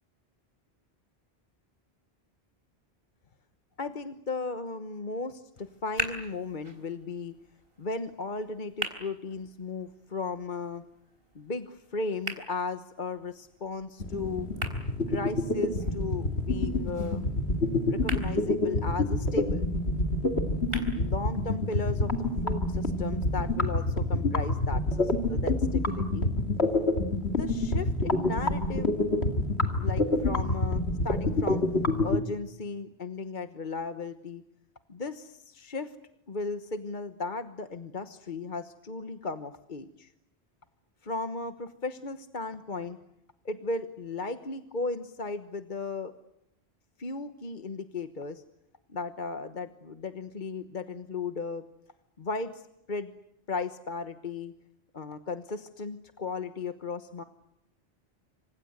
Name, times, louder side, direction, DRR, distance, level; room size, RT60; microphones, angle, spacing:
voice 1, 3.8-7.3 7.8-10.8 11.3-14.5 15.1-17.2 17.9-19.7 20.7-22.1 22.4-26.3 27.3-31.6 32.0-34.4 34.9-35.9 36.3-40.1 41.0-43.0 43.4-46.1 47.0-48.4 48.9-51.6 52.2-52.6 52.9-53.1 53.5-54.5 54.9-57.2, left 3 dB, 50° left, 8 dB, 1.3 m, -36 dB
sound 1, 5.5-21.5, right 1 dB, 65° right, 4.1 m, -43 dB
sound 2, 14.0-32.2, left 2 dB, 90° left, 2.9 m, -27 dB
28.0 x 26.0 x 8.1 m, 0.81 s
omnidirectional pair, 1.0 m